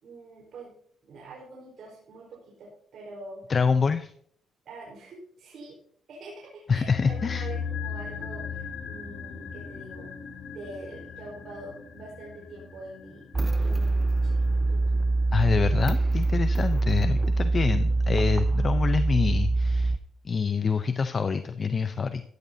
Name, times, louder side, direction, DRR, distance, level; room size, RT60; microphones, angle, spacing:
voice 1, 0.0-0.8 1.0-3.4 4.6-5.8 6.1-10.1 10.5-13.3 13.6-14.8 17.9-18.2, right 2 dB, 65° right, -3 dB, 4.4 m, -45 dB
voice 2, 3.5-4.1 6.7-7.5 15.3-20.0 20.2-22.2, left 5 dB, 40° left, 10 dB, 0.7 m, -26 dB
sound 1, 6.7-16.9 17.2-17.3, left 6 dB, 60° left, 4.3 m, -39 dB
sound 2, 13.3-20.0, right 2 dB, 20° right, 0.6 m, -24 dB
16.0 x 13.5 x 2.8 m, 0.63 s
cardioid pair, 90°, 0 cm